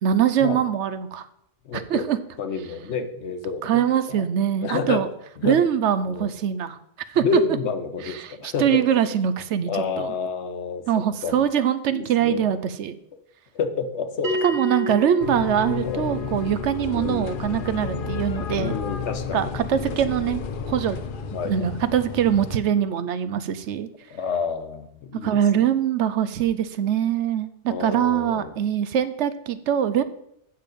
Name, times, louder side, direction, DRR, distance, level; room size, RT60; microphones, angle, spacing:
voice 1, 0.0-1.3 1.7-2.2 3.6-5.1 5.4-6.8 7.1-7.4 8.1-9.7 10.0-10.1 10.9-13.0 14.4-18.7 19.3-20.4 20.7-21.0 21.4-23.9 25.2-30.0, right 9 dB, 80° right, 13 dB, 0.9 m, -23 dB
voice 2, 1.6-4.2 4.6-5.0 5.4-5.6 6.1-6.3 7.1-8.8 9.1-9.2 9.7-10.8 11.2-11.4 11.9-12.5 13.5-14.4 15.8-16.1 16.9-17.3 18.6-20.2 21.3-21.8 24.1-25.4 27.7-28.5, left 5 dB, 70° left, 9 dB, 1.1 m, -29 dB
Bell, 14.2-19.3, left 1 dB, 60° right, 1.9 m, -33 dB
sound 1, 15.2-22.6, left 6 dB, 55° left, 0.8 m, -32 dB
8.9 x 6.7 x 5.2 m, 0.74 s
omnidirectional pair, 1.2 m